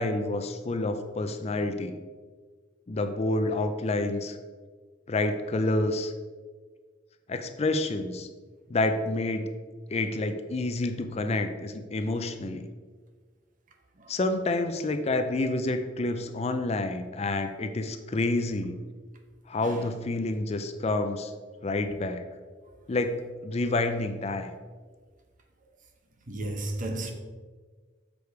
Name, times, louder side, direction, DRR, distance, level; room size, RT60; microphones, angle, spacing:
voice 1, 0.0-2.0 2.9-4.4 5.1-6.1 7.3-8.3 8.7-9.5 9.9-12.7 14.1-18.8 19.5-21.3 21.6-22.3 22.9-24.5, left 2 dB, 35° left, 0.5 m, -28 dB
voice 2, 26.3-27.1, right 2 dB, 45° right, 0.9 m, -32 dB
6.5 x 5.2 x 4.7 m
head